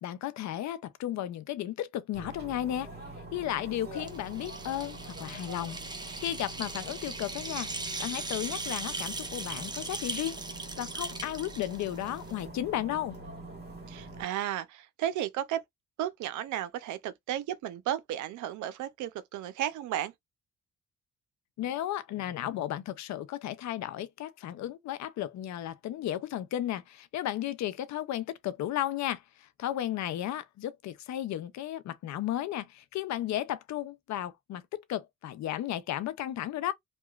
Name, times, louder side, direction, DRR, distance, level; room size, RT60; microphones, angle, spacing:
voice 1, 0.0-2.9 3.3-7.7 8.0-10.4 10.8-13.2 21.6-36.7, left 12 dB, 65° left, 0.5 m, -34 dB
sound 1, 2.1-14.3, right 2 dB, 35° right, 1.6 m, -45 dB
sound 2, 4.0-12.4, right 3 dB, 15° right, 0.5 m, -39 dB
voice 2, 13.9-15.6 16.0-20.1, right 11 dB, 80° right, 0.5 m, -34 dB
2.8 x 2.2 x 2.3 m
cardioid pair, 90°, 30 cm